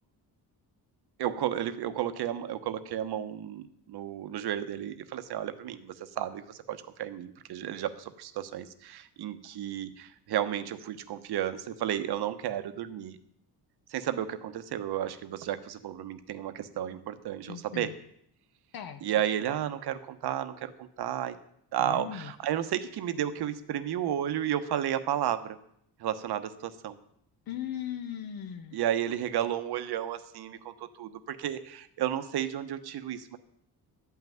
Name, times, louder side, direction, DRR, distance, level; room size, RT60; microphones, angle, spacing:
voice 1, 1.2-13.2 13.9-17.9 19.0-21.4 21.7-25.6 26.0-27.0 28.7-33.4, right 10 dB, 70° right, 10 dB, 1.1 m, -32 dB
voice 2, 17.5-17.9 18.7-19.0 21.8-22.3 27.5-28.8, left 9 dB, 60° left, 8 dB, 0.9 m, -38 dB
12.5 x 5.8 x 9.3 m, 0.71 s
cardioid pair, 155°, 41 cm